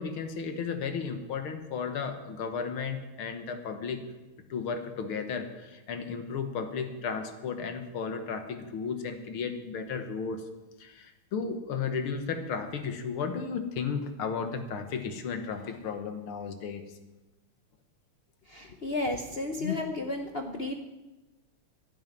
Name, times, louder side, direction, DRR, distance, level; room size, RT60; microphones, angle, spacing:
voice 1, 0.0-4.0 4.5-10.4 10.8-16.8, left 5 dB, 75° left, 7 dB, 2.1 m, -34 dB
voice 2, 18.5-20.7, left 2 dB, 60° left, 4 dB, 0.6 m, -32 dB
11.5 x 9.2 x 9.6 m, 1.1 s
omnidirectional pair, 2.4 m